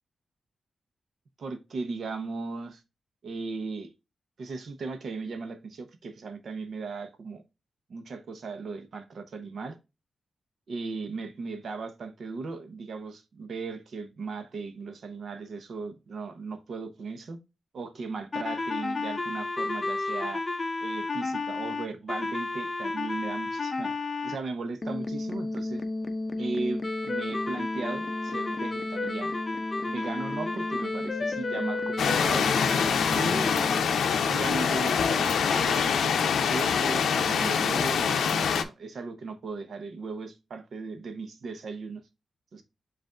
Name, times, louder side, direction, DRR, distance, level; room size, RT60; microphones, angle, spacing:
voice 1, 1.4-2.8 3.2-3.9 4.4-7.4 7.9-9.8 10.7-17.4 17.7-20.4 20.8-24.0 24.2-25.8 26.4-29.3 29.9-32.5 33.1-33.5 34.3-42.0 42.5-42.6, right 4 dB, 60° right, 0.8 m, -37 dB
sound 1, 18.3-24.4 24.8-33.8, left 3 dB, 25° left, 0.6 m, -31 dB
sound 2, 32.0-38.6, left 6 dB, 90° left, 0.5 m, -25 dB
7.6 x 2.6 x 2.4 m
wide cardioid pair, 120°, 0 cm